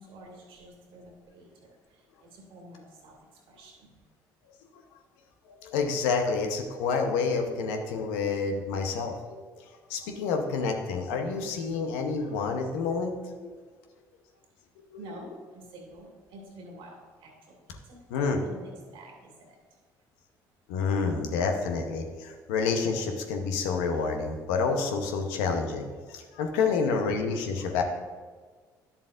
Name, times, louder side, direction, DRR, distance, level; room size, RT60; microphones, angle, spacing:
voice 1, 0.0-4.0 15.0-17.6 17.8-19.6, right 1 dB, 70° right, 0 dB, 2.2 m, -49 dB
voice 2, 5.5-9.4 9.9-13.5 18.1-18.4 20.7-27.8, left 5 dB, 80° left, 4 dB, 0.9 m, -28 dB
11.0 x 7.0 x 2.5 m, 1.5 s
hypercardioid pair, 55°, 9 cm